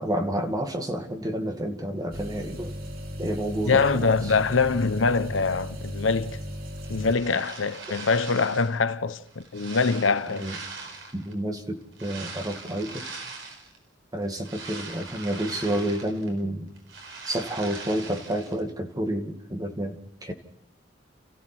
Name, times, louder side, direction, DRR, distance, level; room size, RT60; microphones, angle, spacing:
voice 1, 0.0-2.8 3.2-4.3 10.4-10.6 11.1-13.1 14.1-16.7 17.3-20.3, right 1 dB, 20° right, 2.2 m, -30 dB
sound 1, 2.1-7.1, equal, 50° right, 2.8 m, -36 dB
voice 2, 3.7-6.4 6.9-10.5, left 4 dB, 80° left, 0.9 m, -24 dB
sound 2, 6.8-8.8 9.2-11.3 11.9-13.8 14.2-16.4 16.7-18.6, right 4 dB, 70° right, 4.8 m, -41 dB
29.5 x 15.0 x 6.1 m
head